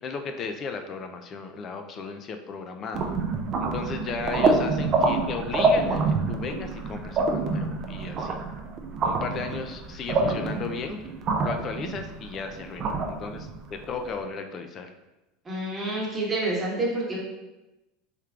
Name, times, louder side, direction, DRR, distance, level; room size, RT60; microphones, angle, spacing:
voice 1, 0.0-3.0 3.6-8.4 9.0-11.0 11.4-14.9, left 5 dB, 40° left, 6 dB, 0.4 m, -35 dB
sound 1, 2.9-14.1, right 3 dB, 40° right, 0.5 m, -27 dB
voice 2, 15.4-17.2, right 2 dB, 20° right, -4 dB, 1.1 m, -28 dB
3.6 x 3.1 x 2.4 m, 1.0 s
supercardioid pair, 105°, 0 cm